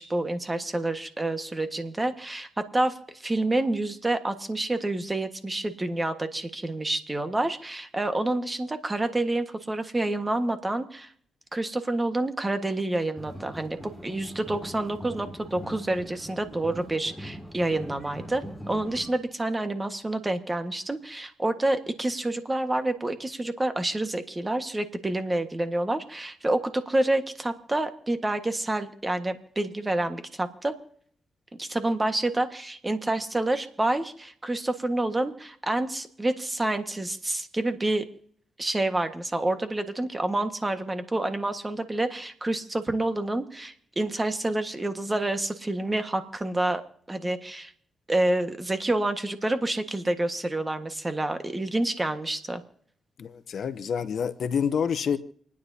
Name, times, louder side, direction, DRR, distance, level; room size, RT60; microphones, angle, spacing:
voice 1, 0.0-11.1 11.5-30.7 31.6-38.0 38.6-46.8 47.1-47.7 48.1-52.6, right 2 dB, 25° right, 1.5 m, -28 dB
sound 1, 13.1-19.1, equal, 5° left, 7.7 m, -41 dB
voice 2, 53.2-55.2, left 7 dB, 65° left, 0.8 m, -27 dB
28.5 x 9.7 x 2.8 m
supercardioid pair, 55°, 0 cm